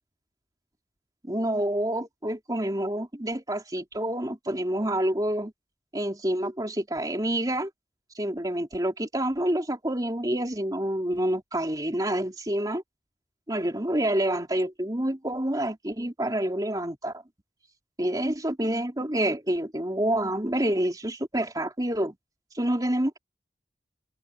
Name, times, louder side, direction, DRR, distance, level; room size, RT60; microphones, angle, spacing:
voice 1, 1.2-5.5 5.9-7.7 8.1-12.8 13.5-17.1 18.0-22.2 22.5-23.2, right 1 dB, 20° right, 3.5 m, -28 dB
head